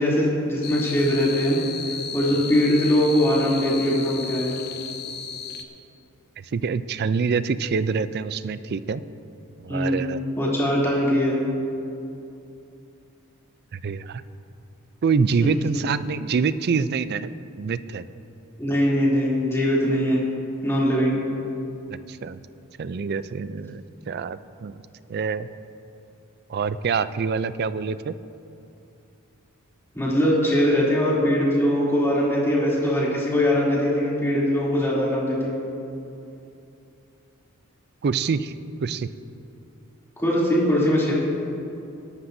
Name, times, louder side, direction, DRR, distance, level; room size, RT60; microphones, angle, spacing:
voice 1, 0.0-1.6 2.1-4.6 9.7-10.1 10.3-11.4 15.4-15.5 18.6-20.2 20.6-21.2 29.9-35.6 40.2-41.1, equal, 10° left, -6 dB, 3.0 m, -21 dB
sound 1, 0.6-5.6, left 6 dB, 50° left, 0.9 m, -34 dB
voice 2, 6.5-9.0 9.6-10.2 13.7-14.2 15.0-17.3 17.6-18.0 21.9-22.4 22.8-24.8 25.1-25.5 26.5-28.1 38.0-38.5 38.8-39.1, right 5 dB, 50° right, 14 dB, 0.4 m, -25 dB
22.5 x 11.5 x 2.7 m, 2.7 s
head